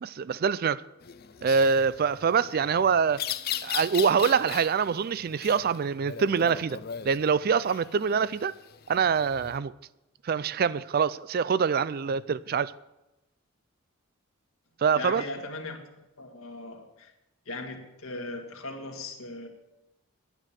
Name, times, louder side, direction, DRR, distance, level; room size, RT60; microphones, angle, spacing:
voice 1, 0.0-0.8 1.4-3.2 3.6-6.8 7.0-8.5 8.9-9.7 10.2-12.7 14.8-15.2, right 6 dB, 45° right, 0.3 m, -25 dB
sound 1, 1.0-9.6, left 10 dB, 50° left, 0.5 m, -39 dB
voice 2, 14.9-15.8 16.2-17.1 17.5-19.5, left 2 dB, 80° left, 1.9 m, -38 dB
10.5 x 9.1 x 7.5 m
head